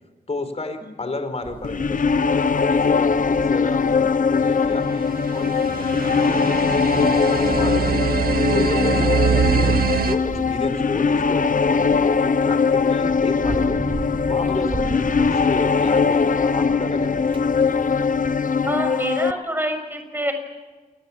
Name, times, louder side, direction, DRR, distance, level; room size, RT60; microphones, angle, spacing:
voice 1, 0.3-8.0 8.5-13.8 14.2-17.5, left 3 dB, 45° left, 9 dB, 4.4 m, -31 dB
sound 1, 1.4-18.4, right 3 dB, 35° right, 3.6 m, -37 dB
sound 2, 1.6-19.3, left 5 dB, 65° left, 1.0 m, -21 dB
sound 3, 4.7-10.2, right 6 dB, 85° right, 1.8 m, -23 dB
voice 2, 18.6-20.3, right 1 dB, 15° right, 7 dB, 6.5 m, -27 dB
28.0 x 21.5 x 7.4 m, 1.3 s
wide cardioid pair, 95°, 15 cm